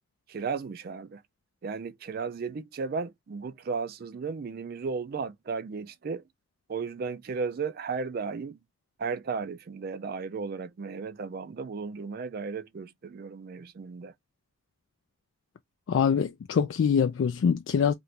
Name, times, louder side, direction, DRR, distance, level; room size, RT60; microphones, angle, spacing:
voice 1, 0.3-1.2 1.6-6.3 6.7-8.6 9.0-14.1, right 5 dB, 50° right, 0.4 m, -35 dB
voice 2, 15.9-17.9, left 7 dB, 70° left, 0.3 m, -24 dB
2.9 x 2.5 x 3.1 m
head